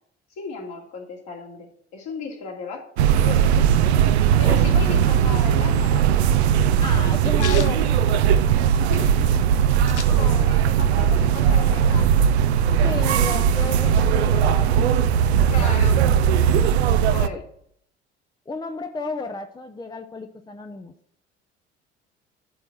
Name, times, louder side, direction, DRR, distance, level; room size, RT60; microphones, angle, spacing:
voice 1, 0.4-2.8 3.1-3.7 4.4-6.1 8.6-9.1 10.1-12.1 12.9-13.9 15.5-16.0 17.1-17.4, left 4 dB, 55° left, 0 dB, 2.7 m, -35 dB
sound 1, 3.0-17.3, right 8 dB, 70° right, 0.6 m, -18 dB
voice 2, 6.8-8.1 10.1-10.5 12.8-14.7 16.9-17.4 18.5-20.9, left 3 dB, 10° left, 5 dB, 0.8 m, -33 dB
sound 2, 7.4-8.8 9.2-9.3 9.4-10.7 11.1-12.2, left 6 dB, 80° left, 0.8 m, -38 dB
11.5 x 4.5 x 7.5 m, 0.68 s
figure-of-eight pair, 60°, 33 cm